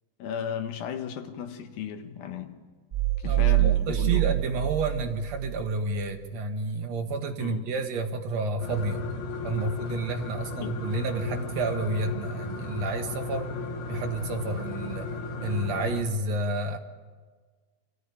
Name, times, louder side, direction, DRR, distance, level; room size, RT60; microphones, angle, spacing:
voice 1, 0.2-2.6 3.2-4.4 7.4-7.7 10.6-10.7, left 8 dB, 75° left, 6 dB, 3.1 m, -35 dB
sound 1, 2.9-5.7, right 17 dB, 75° right, 0.7 m, -25 dB
voice 2, 3.2-9.1 9.4-13.5 13.9-15.1 15.4-16.8, right 3 dB, 55° right, 4 dB, 2.4 m, -30 dB
sound 2, 8.6-16.0, left 3 dB, 90° left, 4.0 m, -35 dB
25.5 x 15.0 x 9.8 m, 1.5 s
omnidirectional pair, 4.3 m